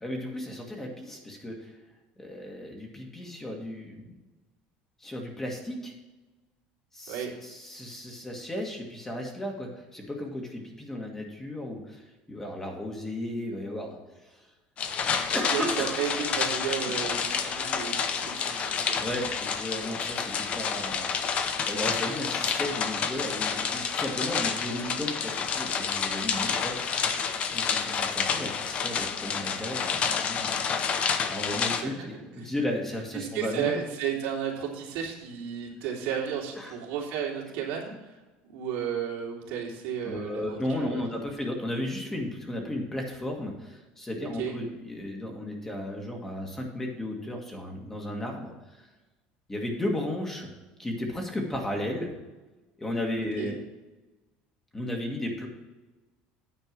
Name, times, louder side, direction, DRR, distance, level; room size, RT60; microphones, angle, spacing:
voice 1, 0.0-1.7 2.2-4.1 5.0-5.9 6.9-14.5 15.1-16.0 18.7-21.1 21.6-27.2 27.5-33.8 36.6-36.7 40.0-48.8 49.5-50.5 50.8-52.1 52.8-53.6 54.7-55.5, left 1 dB, 10° left, 1 dB, 1.6 m, -34 dB
sound 1, 14.8-31.8, left 6 dB, 35° left, 0.7 m, -29 dB
voice 2, 15.2-19.1 31.8-32.5 33.1-38.2 38.4-41.0 44.2-44.5 53.4-53.5, right 8 dB, 75° right, -1 dB, 2.5 m, -33 dB
9.0 x 4.5 x 7.4 m, 1.1 s
cardioid pair, 135°, 4 cm